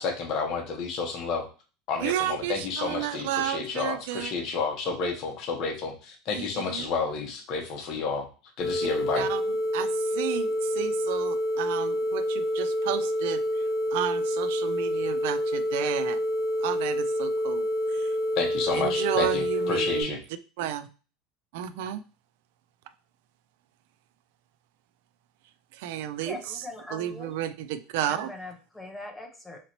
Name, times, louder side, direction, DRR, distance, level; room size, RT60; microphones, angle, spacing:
voice 1, 0.0-1.4 1.9-8.3 8.6-9.3 18.4-20.2, left 4 dB, 40° left, 2 dB, 0.9 m, -30 dB
voice 2, 2.0-4.3 6.3-6.9 9.1-9.4 9.7-16.2 16.6-18.2 18.7-20.2 20.6-20.9 21.5-22.0 25.7-28.3, right 11 dB, 70° right, 12 dB, 0.3 m, -32 dB
sound 1, 8.6-20.0, equal, 60° left, 1.3 m, -28 dB
voice 3, 26.2-27.3 28.1-29.6, left 2 dB, 5° left, 2 dB, 0.6 m, -41 dB
3.9 x 2.9 x 2.9 m, 0.35 s
cardioid pair, 160°, 0 cm